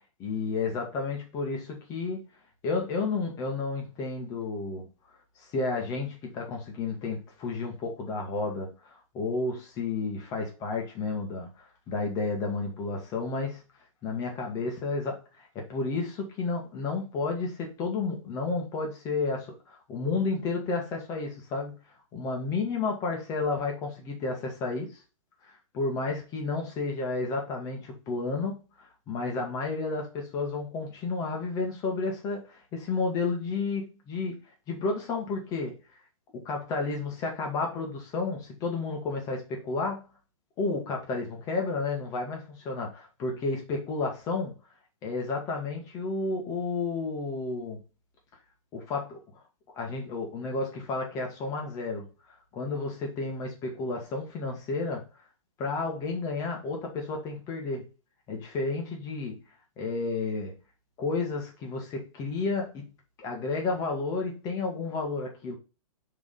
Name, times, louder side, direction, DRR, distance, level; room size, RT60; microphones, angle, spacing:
voice 1, 0.2-2.2 2.6-4.8 5.5-13.6 14.0-21.7 22.1-25.0 25.7-34.4 34.7-35.7 36.3-40.0 40.6-44.5 45.0-47.8 48.7-49.2 49.7-52.0 52.5-55.0 55.6-57.9 58.3-59.4 59.8-60.5 61.0-62.8 63.2-65.5, left 3 dB, 20° left, 1.7 m, -31 dB
7.2 x 3.8 x 3.9 m
hypercardioid pair, 165°, 18 cm